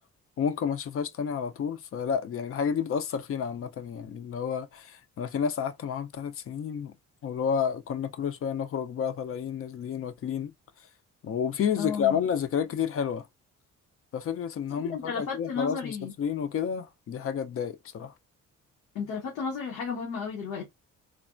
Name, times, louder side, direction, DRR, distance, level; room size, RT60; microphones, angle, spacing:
voice 1, 0.4-6.9 7.2-10.5 11.2-13.3 14.1-18.1, left 7 dB, 50° left, 0.5 m, -30 dB
voice 2, 11.8-12.2 14.8-16.1 18.9-20.7, left 5 dB, 85° left, 1.0 m, -33 dB
3.3 x 2.1 x 2.4 m
cardioid pair, 90°, 30 cm